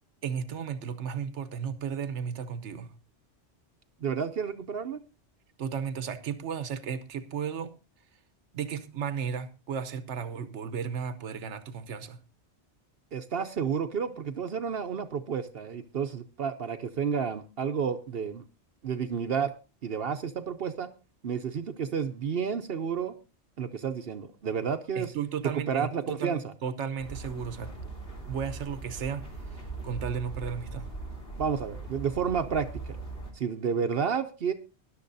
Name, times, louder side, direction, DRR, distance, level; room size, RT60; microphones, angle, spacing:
voice 1, 0.2-2.9 5.6-7.8 8.5-12.2 24.9-27.7 28.3-29.3 29.8-30.9, right 7 dB, 90° right, 1.2 m, -34 dB
voice 2, 4.0-5.0 13.1-18.4 18.8-19.5 19.8-20.9 21.2-23.1 23.6-25.1 25.7-26.5 31.4-33.0 33.3-34.5, right 6 dB, 60° right, 0.9 m, -31 dB
sound 1, 27.0-33.3, right 3 dB, 55° left, 3.7 m, -40 dB
20.0 x 11.5 x 2.6 m
omnidirectional pair, 1.2 m